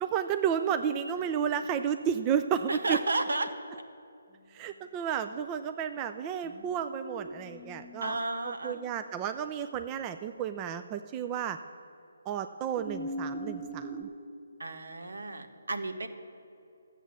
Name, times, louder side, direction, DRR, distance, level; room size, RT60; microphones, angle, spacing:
voice 1, 0.0-3.0 4.5-8.2 8.4-11.6 12.3-14.1, right 8 dB, 20° right, 9 dB, 0.4 m, -32 dB
voice 2, 2.7-3.5 8.0-8.8 14.6-16.1, right 2 dB, 75° right, 6 dB, 1.4 m, -32 dB
sound 1, 6.4-9.1 12.7-14.0, right 1 dB, 20° left, 1.3 m, -41 dB
13.0 x 8.1 x 7.4 m, 2.6 s
figure-of-eight pair, 150°, 0 cm